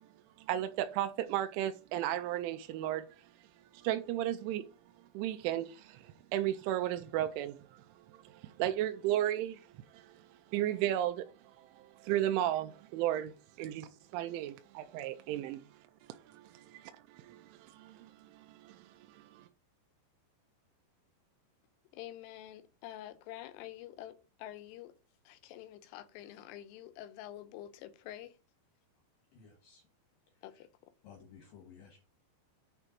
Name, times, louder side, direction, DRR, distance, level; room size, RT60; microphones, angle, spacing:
voice 1, 0.4-3.3 3.7-4.6 5.1-11.3 11.6-13.3 13.6-15.6 16.1-19.5, right 12 dB, 85° right, 2.8 m, -35 dB
voice 2, 21.9-24.9 25.3-28.4 30.4-30.7, left 13 dB, 85° left, 3.3 m, -47 dB
voice 3, 29.3-29.8 31.0-32.0, left 7 dB, 65° left, 2.3 m, -55 dB
9.0 x 3.4 x 5.8 m
omnidirectional pair, 5.9 m